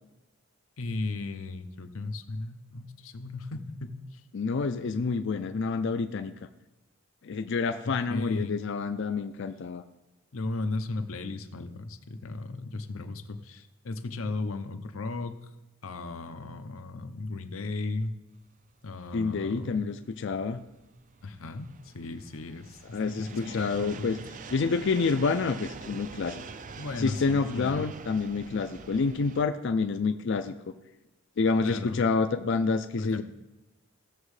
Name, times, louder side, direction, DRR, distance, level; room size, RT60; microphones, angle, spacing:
voice 1, 0.8-4.2 8.1-8.6 10.3-15.4 15.8-18.1 18.8-19.8 21.2-22.8 23.1-24.1 26.8-27.8 31.6-32.0 33.0-33.2, left 3 dB, 85° left, 9 dB, 0.8 m, -36 dB
voice 2, 4.3-6.3 7.2-9.8 19.1-20.6 22.9-24.2 24.5-26.4 27.0-30.5 31.4-33.2, left 4 dB, 60° left, 9 dB, 0.4 m, -28 dB
sound 1, 18.5-29.4, right 5 dB, 40° right, 0.4 m, -45 dB
16.0 x 7.1 x 3.3 m, 0.98 s
head